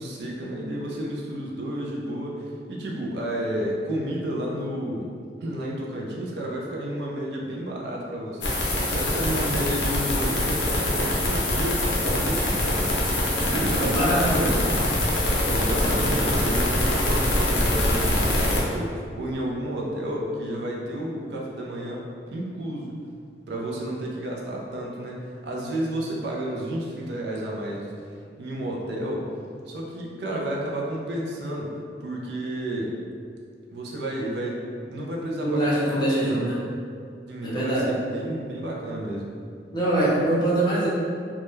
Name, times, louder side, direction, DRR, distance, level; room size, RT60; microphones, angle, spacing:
voice 1, 0.0-5.1 5.4-12.9 13.4-14.9 15.3-22.9 23.5-27.9 28.4-29.3 29.7-31.7 32.0-33.0 33.7-36.5 37.3-39.3, right 1 dB, 70° right, -2 dB, 0.4 m, -31 dB
sound 1, 8.4-18.6, left 1 dB, 90° left, 0.5 m, -24 dB
voice 2, 13.5-14.5 15.8-16.1 35.4-36.6 37.4-37.9 39.7-40.9, right 1 dB, 25° left, -7 dB, 0.5 m, -24 dB
2.3 x 2.1 x 3.0 m, 2.2 s
head